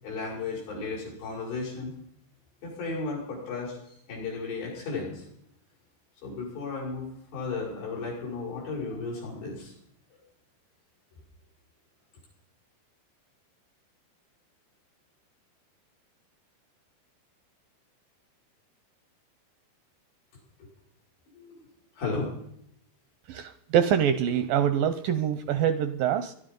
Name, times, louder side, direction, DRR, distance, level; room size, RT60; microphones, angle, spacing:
voice 1, 0.0-1.9 2.6-5.2 6.2-9.7 10.1-10.2 21.3-21.6 22.0-22.3, left 3 dB, 90° left, -3 dB, 7.9 m, -34 dB
voice 2, 23.3-26.3, right 9 dB, 80° right, 11 dB, 2.0 m, -25 dB
21.5 x 12.5 x 5.3 m, 0.73 s
omnidirectional pair, 4.7 m